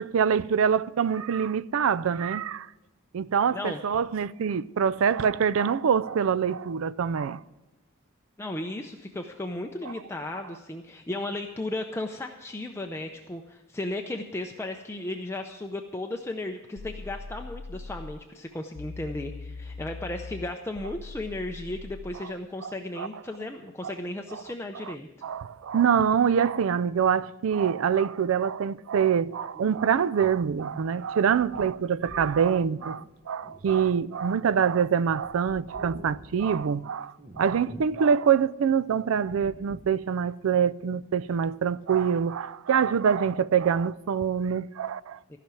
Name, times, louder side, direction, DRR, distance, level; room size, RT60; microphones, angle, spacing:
voice 1, 0.0-2.7 3.1-7.4 22.6-23.1 24.9-25.0 25.2-45.4, right 7 dB, 70° right, 0.4 m, -25 dB
voice 2, 8.4-25.1 45.3-45.4, left 2 dB, 10° left, 0.5 m, -35 dB
sound 1, 16.8-18.2 18.7-22.2, left 3 dB, 65° left, 0.5 m, -41 dB
sound 2, 29.5-34.5 34.8-36.7 37.2-38.0 38.3-38.4 39.1-40.0, right 1 dB, 30° right, 0.8 m, -47 dB
14.5 x 5.8 x 8.9 m
head